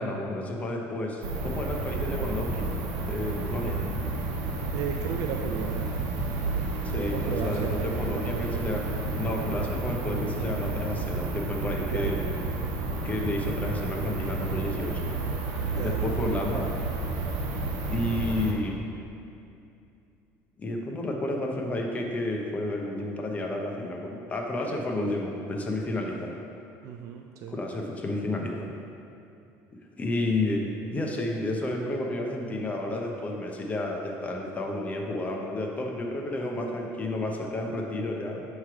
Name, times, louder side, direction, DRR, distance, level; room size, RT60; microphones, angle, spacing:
voice 1, 0.0-2.6 3.1-3.8 6.8-8.9 9.1-12.2 13.0-15.0 15.8-16.7 17.9-18.8 20.6-26.3 27.5-28.7 30.0-30.6 30.9-38.4, left 1 dB, 25° left, 0 dB, 0.7 m, -31 dB
sound 1, 1.2-18.5, right 3 dB, 80° right, 0.9 m, -31 dB
voice 2, 4.7-5.9 6.9-8.7 9.4-9.6 11.8-12.3 15.7-16.3 26.1-26.3 26.8-27.6, right 7 dB, 60° right, 3 dB, 0.3 m, -36 dB
7.2 x 3.2 x 4.7 m, 2.6 s
cardioid pair, 125°, 6 cm